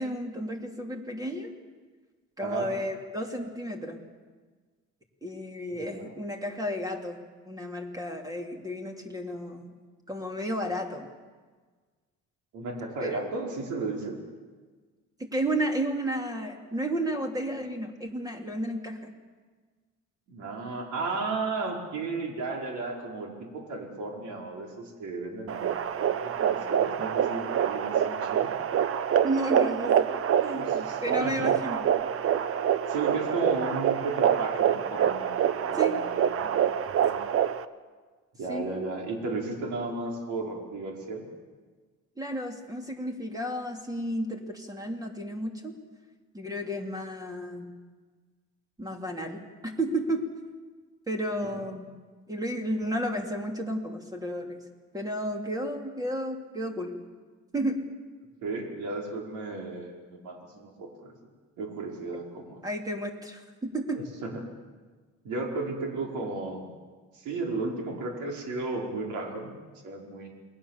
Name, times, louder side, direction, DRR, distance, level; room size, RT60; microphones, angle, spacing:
voice 1, 0.0-1.5 2.4-4.0 5.2-9.7 10.1-11.1 13.0-13.2 15.2-19.1 29.2-30.1 30.4-31.9 35.7-36.0 38.5-38.6 42.2-45.8 46.3-47.7 48.8-50.2 51.1-51.9 52.3-54.6 54.9-57.0 57.5-57.8 62.6-64.0, right 1 dB, 10° right, 3 dB, 3.1 m, -32 dB
voice 2, 2.4-2.7 5.7-6.1 12.5-14.2 20.3-25.7 26.2-28.6 30.5-31.5 32.9-35.4 35.7-36.6 37.0-37.2 38.4-41.2 58.4-61.1 61.6-62.6 63.9-64.4 65.2-66.7 67.1-69.6 69.8-70.3, right 3 dB, 75° right, 1 dB, 4.8 m, -34 dB
sound 1, 25.5-37.6, right 9 dB, 50° right, 1.0 m, -26 dB
28.5 x 20.5 x 7.4 m, 1.4 s
cardioid pair, 140°, 30 cm